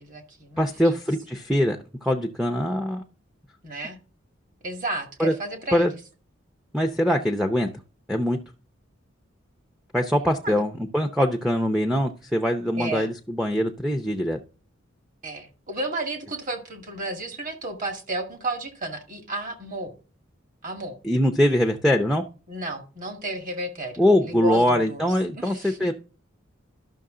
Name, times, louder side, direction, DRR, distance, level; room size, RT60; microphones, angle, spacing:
voice 1, 0.0-0.9 3.6-4.0 4.6-5.9 10.4-10.6 12.7-13.1 15.2-19.9 20.6-21.0 22.5-25.0 25.3-25.9, right 2 dB, 40° right, 2.0 m, -32 dB
voice 2, 0.6-3.0 5.2-5.3 5.7-5.9 6.7-7.7 8.1-8.4 9.9-14.4 21.0-22.2 24.0-25.9, equal, ahead, 0.6 m, -23 dB
12.0 x 6.3 x 3.8 m
head